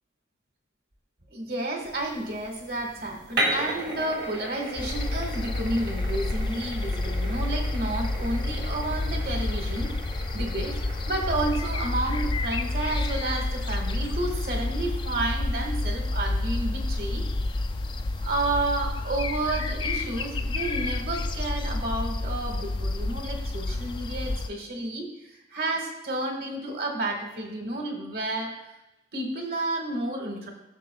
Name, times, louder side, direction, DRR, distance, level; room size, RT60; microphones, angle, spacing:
voice 1, 1.3-17.2 18.2-28.5 29.1-30.5, right 2 dB, 60° right, 2 dB, 1.6 m, -31 dB
sound 1, 1.8-18.8, right 1 dB, 85° right, 2.0 m, -38 dB
sound 2, 4.8-24.5, left 2 dB, 25° left, 0.3 m, -29 dB
14.5 x 6.4 x 2.3 m, 0.96 s
head